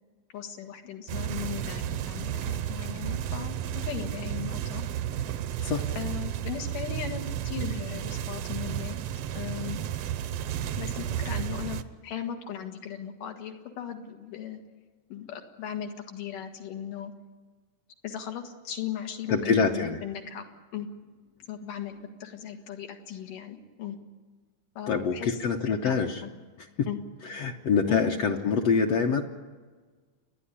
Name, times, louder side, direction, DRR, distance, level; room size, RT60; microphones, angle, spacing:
voice 1, 0.3-4.8 5.9-9.0 9.3-9.8 10.8-14.6 15.1-17.1 18.0-20.4 20.7-20.9 21.5-24.0 24.8-25.4 25.7-26.3 26.9-27.0 27.9-28.1, left 9 dB, 90° left, 4 dB, 3.4 m, -37 dB
sound 1, 1.1-11.8, right 10 dB, 80° right, 1.4 m, -32 dB
voice 2, 19.3-20.0 24.9-26.2 26.8-26.9 27.3-29.2, left 5 dB, 65° left, 1 dB, 1.8 m, -25 dB
29.0 x 11.0 x 10.0 m, 1.4 s
omnidirectional pair, 3.6 m